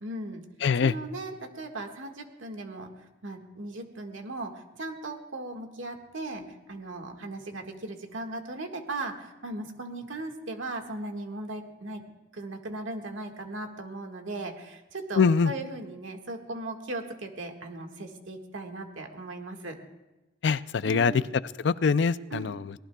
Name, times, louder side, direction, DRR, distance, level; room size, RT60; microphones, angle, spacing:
voice 1, 0.0-0.4 0.8-2.9 3.2-6.4 6.7-12.0 12.3-19.8 20.8-21.2 22.3-22.5, right 2 dB, 80° right, 3 dB, 1.7 m, -37 dB
voice 2, 0.6-1.0 15.2-15.5 20.4-21.1 21.6-22.7, left 5 dB, 60° left, 16 dB, 0.4 m, -24 dB
23.5 x 18.5 x 2.3 m, 1.1 s
head